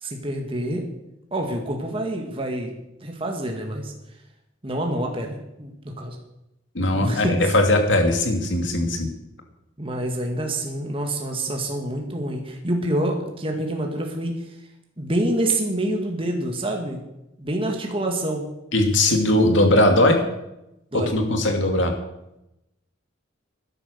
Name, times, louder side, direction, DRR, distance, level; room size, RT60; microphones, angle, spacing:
voice 1, 0.0-0.9 1.3-2.7 3.0-3.9 4.6-6.2 6.9-7.4 9.8-14.5 15.0-17.0 17.4-18.5 20.9-21.1, right 1 dB, 30° right, 2 dB, 1.9 m, -27 dB
voice 2, 6.7-9.1 18.7-20.2 20.9-21.9, left 1 dB, 70° left, 4 dB, 2.6 m, -19 dB
13.0 x 10.5 x 6.7 m, 0.88 s
head